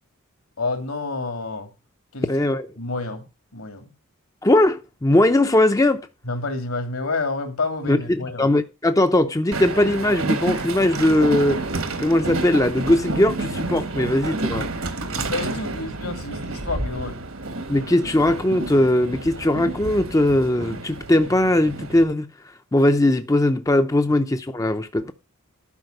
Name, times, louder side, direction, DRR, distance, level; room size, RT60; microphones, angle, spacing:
voice 1, 0.6-1.7 2.1-2.3 2.8-3.2 3.5-3.8 6.2-8.5 15.1-17.2, left 3 dB, 75° left, 2.7 m, -29 dB
voice 2, 2.3-2.7 4.4-6.1 7.9-11.6 12.0-14.7 17.7-22.3 22.7-25.1, left 1 dB, 15° left, 0.5 m, -19 dB
Train, 9.5-22.0, right 2 dB, 70° right, 1.3 m, -30 dB
12.0 x 5.1 x 6.5 m
head